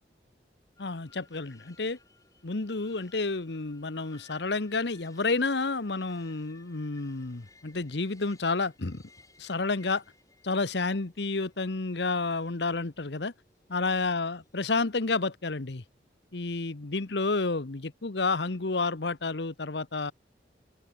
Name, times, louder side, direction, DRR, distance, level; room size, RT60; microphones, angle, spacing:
voice 1, 0.8-2.0 2.4-9.0 9.4-10.0 10.4-13.3 13.7-15.8 16.3-20.1, left 3 dB, 70° left, 1.1 m, -30 dB
sound 1, 0.8-15.1, left 3 dB, 20° left, 7.8 m, -61 dB
head